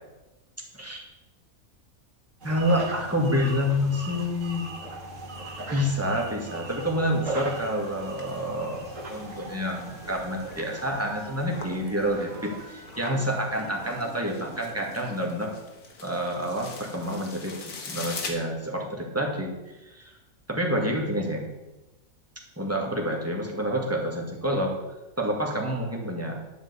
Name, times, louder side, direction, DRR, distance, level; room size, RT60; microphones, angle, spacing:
voice 1, 2.4-4.7 5.7-15.5 16.0-17.6 17.9-19.5 19.8-20.1 20.5-21.4 22.6-24.8 25.2-26.4, equal, 10° right, 0 dB, 2.0 m, -28 dB
sound 1, 2.4-14.8, right 2 dB, 60° right, 2.0 m, -40 dB
sound 2, 7.4-18.3, left 4 dB, 85° left, 2.0 m, -44 dB
sound 3, 9.9-12.9 13.4-15.0, right 5 dB, 80° right, 2.3 m, -47 dB
11.0 x 5.1 x 8.2 m, 1.0 s
omnidirectional pair, 1.5 m